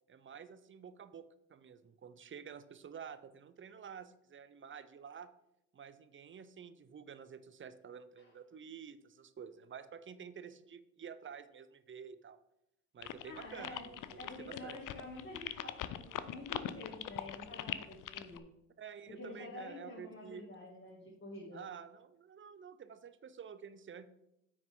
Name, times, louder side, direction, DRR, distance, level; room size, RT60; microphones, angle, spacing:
voice 1, 0.1-5.3 5.7-12.4 12.9-14.8 18.8-20.4 21.5-24.1, right 7 dB, 35° right, 13 dB, 0.7 m, -50 dB
sound 1, 13.0-18.4, left 12 dB, 55° left, 0.7 m, -41 dB
voice 2, 13.2-13.9 14.2-18.5 19.1-21.7, left 2 dB, 35° left, -4 dB, 2.6 m, -48 dB
9.1 x 6.3 x 3.8 m, 0.83 s
supercardioid pair, 65°, 37 cm